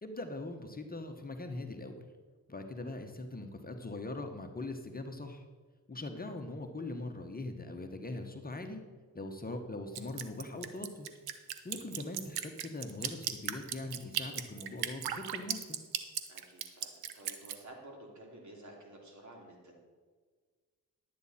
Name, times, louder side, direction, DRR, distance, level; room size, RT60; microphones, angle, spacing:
voice 1, 0.0-1.9 2.5-5.4 5.9-8.8 9.1-11.1 11.6-15.8, left 2 dB, 25° left, 5 dB, 1.1 m, -41 dB
Drip, 9.9-17.6, right 10 dB, 85° right, 0.8 m, -37 dB
voice 2, 16.3-19.8, right 1 dB, 50° right, 0 dB, 3.1 m, -52 dB
11.5 x 8.6 x 4.3 m, 1.5 s
cardioid pair, 65°, 37 cm